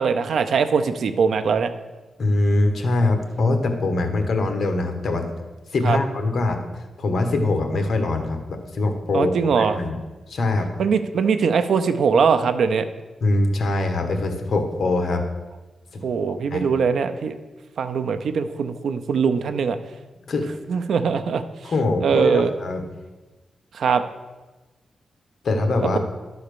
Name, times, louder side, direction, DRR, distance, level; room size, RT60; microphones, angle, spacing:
voice 1, 0.0-1.7 5.8-6.0 9.1-9.8 10.8-12.9 16.0-17.4 17.8-19.8 20.7-21.4 22.0-22.5 23.7-24.0, right 6 dB, 80° right, 9 dB, 0.6 m, -21 dB
voice 2, 2.2-5.3 5.7-6.6 7.0-10.0 10.3-10.7 13.2-15.2 15.9-16.0 16.5-16.7 20.2-20.5 21.6-22.8 25.4-26.0, left 2 dB, 60° left, 5 dB, 1.4 m, -23 dB
12.0 x 4.2 x 6.9 m, 1.2 s
wide cardioid pair, 105°, 0 cm